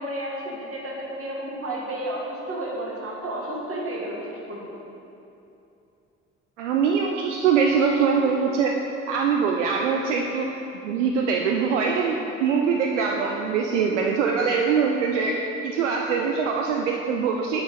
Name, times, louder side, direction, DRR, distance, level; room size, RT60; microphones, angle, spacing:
voice 1, 0.0-4.8, right 1 dB, 40° right, -3 dB, 1.9 m, -32 dB
voice 2, 6.6-10.5 10.8-17.6, right 5 dB, 75° right, 1 dB, 0.5 m, -23 dB
8.9 x 4.8 x 5.0 m, 2.8 s
figure-of-eight pair, 45°, 36 cm